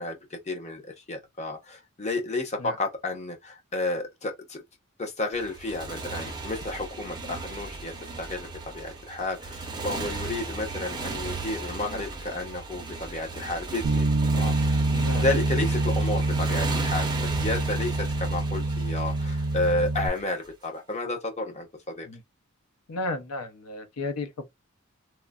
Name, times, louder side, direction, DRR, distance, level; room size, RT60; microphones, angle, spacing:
voice 1, 0.0-4.6 5.0-14.1 14.3-14.8 15.2-17.1 17.4-22.1, left 2 dB, 30° left, 0.8 m, -31 dB
Motorcycle, 5.3-20.5, right 3 dB, 20° right, 0.5 m, -36 dB
Bass guitar, 13.8-20.1, right 2 dB, 80° right, 0.4 m, -26 dB
voice 2, 14.9-15.2 22.0-22.2 22.9-24.5, left 2 dB, 90° left, 0.6 m, -34 dB
3.1 x 2.1 x 2.3 m
head